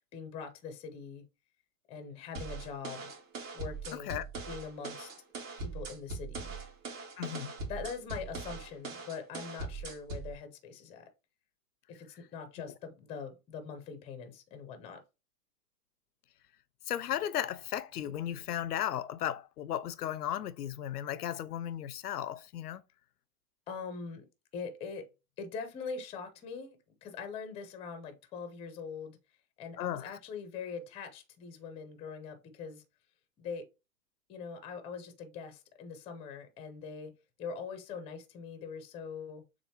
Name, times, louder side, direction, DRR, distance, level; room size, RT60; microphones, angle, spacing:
voice 1, 0.1-1.2 1.9-3.1 3.5-5.1 5.6-6.5 7.6-11.0 11.9-15.0 23.7-24.3 24.5-25.1 25.4-29.2 29.6-32.8 33.4-33.7 34.3-37.1 37.4-39.4, left 5 dB, 15° left, 0.6 m, -42 dB
sound 1, 2.3-10.3, right 3 dB, 55° right, 2.4 m, -41 dB
voice 2, 3.9-4.2 7.2-7.5 16.9-22.8 29.8-30.2, left 11 dB, 90° left, 0.6 m, -35 dB
6.9 x 2.6 x 2.9 m
hypercardioid pair, 135°, 45 cm